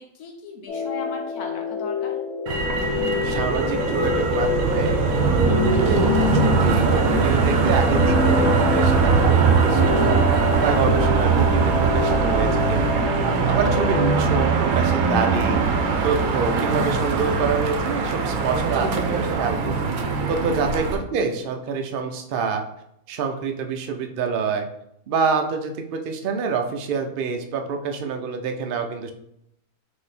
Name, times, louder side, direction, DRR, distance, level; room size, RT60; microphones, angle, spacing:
voice 1, 0.0-2.1 20.6-20.7, left 4 dB, 85° left, 2 dB, 1.3 m, -37 dB
sound 1, 0.7-14.2, left 6 dB, 65° left, 0.8 m, -27 dB
Motor vehicle (road), 2.5-21.0, right 5 dB, 85° right, 1.1 m, -21 dB
voice 2, 3.2-10.2 10.6-12.9 13.4-15.6 16.0-19.8 20.3-22.6 23.1-24.7 25.1-29.1, right 5 dB, 70° right, 4 dB, 0.5 m, -27 dB
3.9 x 2.8 x 4.0 m, 0.75 s
omnidirectional pair, 1.5 m